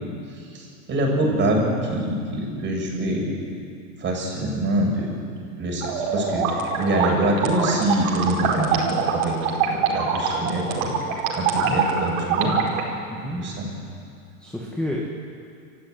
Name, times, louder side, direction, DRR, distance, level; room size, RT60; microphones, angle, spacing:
voice 1, 0.5-3.4 4.0-5.1 5.6-6.4 6.8-9.4 9.6-11.0 11.4-12.6 13.4-13.7, right 1 dB, 25° right, -1 dB, 7.2 m, -24 dB
sound 1, 5.8-12.8, right 6 dB, 55° right, 5.0 m, -24 dB
voice 2, 11.4-11.9 13.1-13.5 14.4-15.1, left 1 dB, ahead, -3 dB, 2.2 m, -31 dB
28.5 x 15.0 x 9.5 m, 2.4 s
hypercardioid pair, 130°, 45 cm